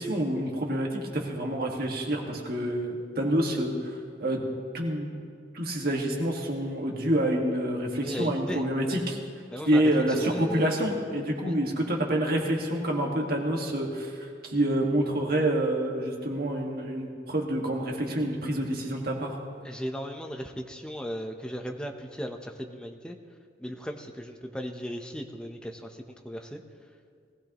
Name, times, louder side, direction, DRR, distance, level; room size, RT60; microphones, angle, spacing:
voice 1, 0.0-3.7 4.2-4.4 4.7-5.1 5.5-9.2 9.7-19.4, right 1 dB, 55° right, 0 dB, 1.8 m, -27 dB
voice 2, 8.0-9.0 9.5-9.9 10.2-10.8 11.4-11.6 19.6-23.2 23.6-26.6, equal, 5° left, 4 dB, 0.8 m, -37 dB
19.5 x 15.0 x 3.0 m, 2.2 s
head